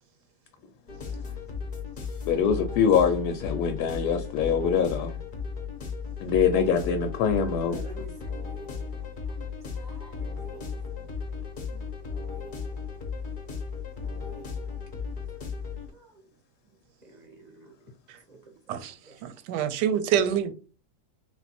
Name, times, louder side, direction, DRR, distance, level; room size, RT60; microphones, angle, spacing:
sound 1, 0.9-15.9, left 5 dB, 45° left, 0.7 m, -35 dB
voice 1, 2.3-5.1 6.2-7.8, left 7 dB, 75° left, 1.1 m, -24 dB
voice 2, 7.3-8.5 9.3-10.8 15.9-16.2 17.0-17.7 18.3-18.8 19.0-19.1, right 2 dB, 35° right, 0.7 m, -49 dB
voice 3, 19.2-20.5, right 9 dB, 85° right, 1.2 m, -26 dB
3.4 x 2.6 x 4.1 m
omnidirectional pair, 1.8 m